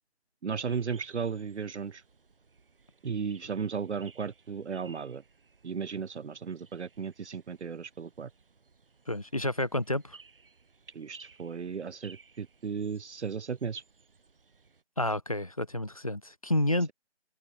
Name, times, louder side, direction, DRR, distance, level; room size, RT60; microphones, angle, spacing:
voice 1, 0.4-2.0 3.0-5.2 5.6-8.3 10.9-13.8, right 6 dB, 80° right, 0.7 m, -35 dB
sound 1, 0.7-14.8, right 4 dB, 55° right, 4.0 m, -59 dB
voice 2, 9.1-10.2 15.0-16.9, left 1 dB, 35° left, 0.5 m, -29 dB
figure-of-eight pair, 165°, 34 cm